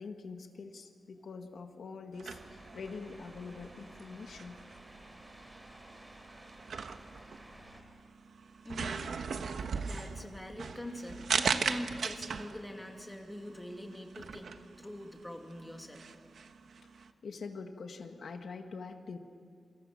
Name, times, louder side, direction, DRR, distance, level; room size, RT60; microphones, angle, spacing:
voice 1, 0.0-4.6 17.0-19.2, left 4 dB, 75° left, 5 dB, 1.7 m, -44 dB
sound 1, 2.1-17.1, right 5 dB, 90° right, 1.2 m, -39 dB
sound 2, 2.3-7.8, right 1 dB, 10° right, 3.5 m, -54 dB
voice 2, 8.6-9.1 9.7-16.0, left 1 dB, 10° left, 3 dB, 2.4 m, -44 dB
28.0 x 25.0 x 7.4 m, 2.3 s
wide cardioid pair, 150°, 0 cm